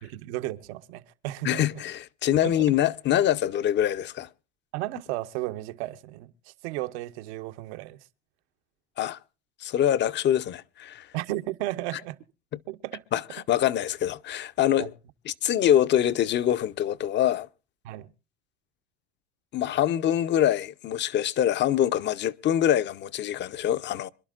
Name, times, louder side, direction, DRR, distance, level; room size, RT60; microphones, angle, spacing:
voice 1, 0.0-1.8 2.4-2.5 4.7-8.0 11.1-12.2 12.7-13.0 14.8-14.9 17.8-18.1, right 17 dB, 75° right, 1.1 m, -34 dB
voice 2, 1.4-4.3 9.0-9.2 9.6-11.1 13.1-14.9 15.3-17.5 19.5-24.1, left 11 dB, 35° left, 0.7 m, -24 dB
26.0 x 11.5 x 2.5 m
supercardioid pair, 120°, 33 cm